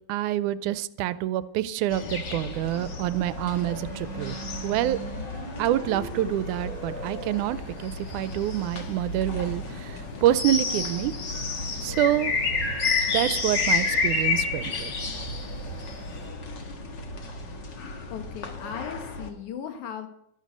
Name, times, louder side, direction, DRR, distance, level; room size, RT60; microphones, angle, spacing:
voice 1, 0.1-4.4 4.6-5.0 5.6-11.1 11.8-12.3 13.1-14.9, right 13 dB, 85° right, 15 dB, 2.1 m, -27 dB
sound 1, 1.9-19.3, left 4 dB, 45° left, 1.7 m, -31 dB
sound 2, 3.2-16.3, right 2 dB, 25° left, 6.0 m, -43 dB
voice 2, 18.1-20.1, left 8 dB, 75° left, 6 dB, 2.9 m, -37 dB
12.5 x 12.0 x 5.2 m, 0.73 s
omnidirectional pair, 3.5 m